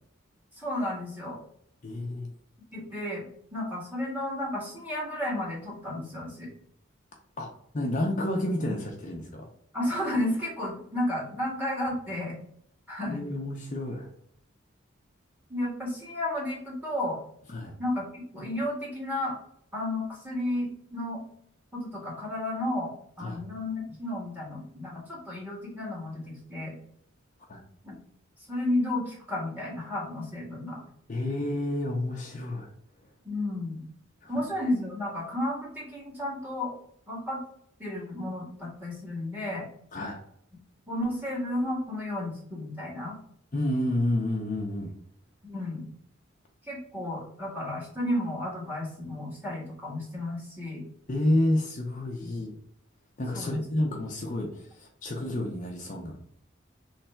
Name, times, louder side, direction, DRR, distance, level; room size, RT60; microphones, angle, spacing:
voice 1, 0.6-1.4 2.7-3.3 3.5-6.5 9.7-12.4 12.9-13.2 15.5-17.2 17.8-19.4 19.7-21.2 21.7-26.8 27.8-28.0 28.5-30.8 33.2-33.8 34.3-36.7 37.1-37.4 37.8-39.6 40.9-43.2 45.4-45.9 46.6-50.8 52.2-52.3 53.3-53.6, left 1 dB, 10° right, -5 dB, 1.8 m, -32 dB
voice 2, 1.8-2.3 7.4-7.5 7.7-9.5 13.1-14.1 17.5-17.7 23.2-23.4 27.5-27.6 31.1-32.7 34.2-34.3 39.9-40.2 43.5-44.9 51.1-52.5 53.2-56.2, left 1 dB, 40° left, 1 dB, 0.7 m, -30 dB
3.4 x 3.2 x 4.3 m, 0.68 s
head